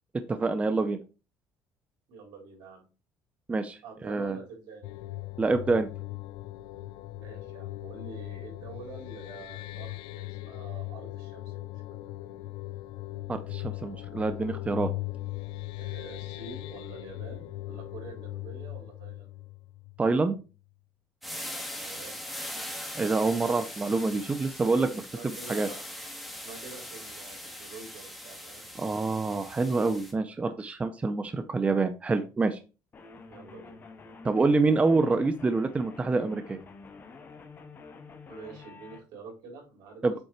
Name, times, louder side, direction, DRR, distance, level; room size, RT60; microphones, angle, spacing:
voice 1, 0.3-1.0 3.5-3.8 4.0-4.4 5.4-5.9 13.3-14.9 20.0-20.4 23.0-24.9 25.5-25.7 28.8-32.6 34.2-36.6 40.0-40.1, right 3 dB, 15° right, 10 dB, 0.6 m, -26 dB
voice 2, 2.1-2.8 3.8-4.9 7.2-11.7 15.8-19.3 21.4-22.2 24.9-25.9 26.4-28.6 33.3-33.8 38.3-40.0, right 3 dB, 80° right, 0 dB, 4.1 m, -47 dB
sound 1, 4.8-20.3, left 17 dB, 85° left, 0.3 m, -39 dB
sound 2, 21.2-30.1, equal, ahead, 1.5 m, -41 dB
sound 3, 32.9-39.0, left 4 dB, 30° left, 1.2 m, -48 dB
7.9 x 3.8 x 4.3 m, 0.32 s
cardioid pair, 135°, 7 cm